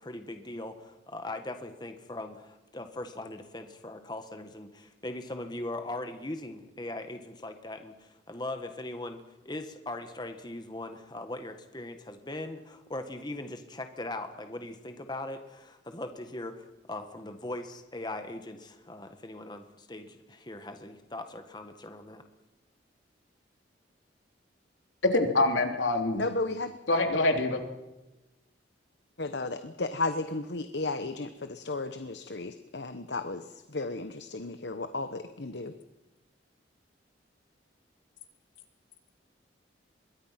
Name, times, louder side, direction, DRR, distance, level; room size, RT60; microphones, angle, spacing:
voice 1, 0.0-22.2, left 2 dB, 20° left, 7 dB, 1.6 m, -40 dB
voice 2, 25.1-26.2 26.9-27.6, left 2 dB, 90° left, 4 dB, 3.4 m, -25 dB
voice 3, 26.1-26.8 29.2-35.7, left 2 dB, 65° left, 9 dB, 1.1 m, -34 dB
26.0 x 22.5 x 5.9 m, 1.0 s
head